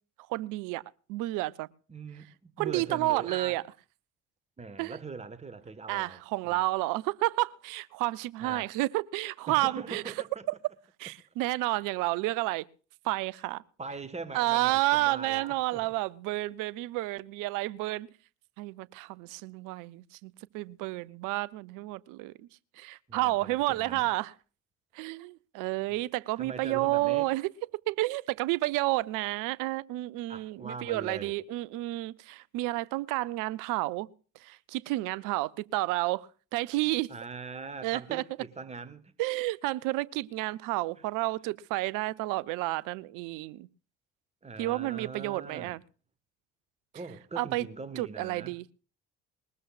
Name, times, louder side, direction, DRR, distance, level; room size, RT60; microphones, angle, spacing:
voice 1, 0.3-0.8 1.1-1.7 2.6-3.6 4.8-5.0 5.9-10.0 11.0-12.6 13.0-13.6 14.3-18.1 18.6-22.3 22.8-24.3 24.9-27.5 27.9-34.1 34.4-37.1 37.8-38.2 39.2-43.7 44.6-45.8 47.4-47.7 48.0-48.6, right 19 dB, 55° right, 0.7 m, -30 dB
voice 2, 1.9-3.6 4.6-6.2 6.4-6.6 8.4-8.7 9.5-10.4 13.8-15.9 23.1-24.1 25.9-26.0 26.4-27.3 30.3-31.4 37.1-39.1 44.4-45.7 46.9-48.6, right 4 dB, 15° right, 1.4 m, -41 dB
21.0 x 19.5 x 2.4 m
figure-of-eight pair, 50°, 37 cm